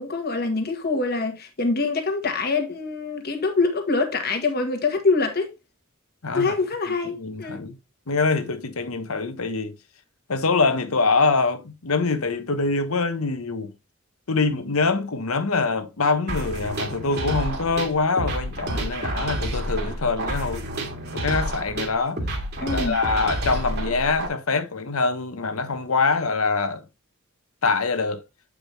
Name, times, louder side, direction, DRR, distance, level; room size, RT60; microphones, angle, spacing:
voice 1, 0.0-5.5 6.3-7.6 22.6-23.0, left 3 dB, 50° left, 1.5 m, -25 dB
voice 2, 6.2-6.5 7.2-7.8 8.1-9.7 10.3-13.7 14.3-20.6 21.1-22.2 22.7-26.8 27.6-28.2, left 4 dB, 85° left, 1.1 m, -24 dB
sound 1, 16.3-24.3, right 1 dB, 50° right, 2.0 m, -29 dB
8.2 x 4.9 x 3.4 m
head